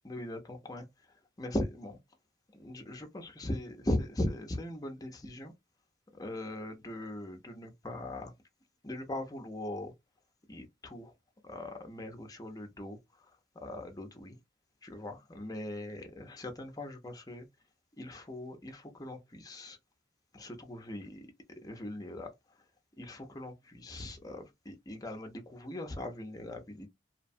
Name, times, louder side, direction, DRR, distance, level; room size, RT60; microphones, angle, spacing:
voice 1, 0.0-2.0 2.5-5.5 6.1-8.3 8.8-9.9 10.5-11.1 11.4-14.4 14.8-17.5 18.0-19.8 20.3-22.3 23.0-26.9, left 1 dB, 20° left, 0.5 m, -40 dB
2.7 x 2.1 x 2.5 m
head